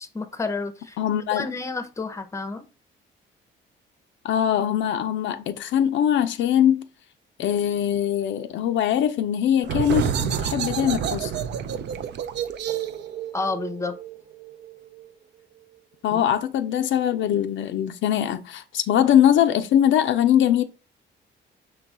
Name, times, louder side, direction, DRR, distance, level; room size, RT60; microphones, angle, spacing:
voice 1, 0.0-1.0 1.3-2.6 13.3-13.9 16.1-16.2, left 3 dB, 15° left, 0.6 m, -30 dB
voice 2, 1.0-1.5 4.2-6.9 7.4-11.3 16.0-20.7, left 10 dB, 75° left, 0.4 m, -22 dB
sound 1, 9.6-15.0, right 8 dB, 60° right, 0.4 m, -29 dB
5.6 x 2.3 x 4.0 m
cardioid pair, 90°, 20 cm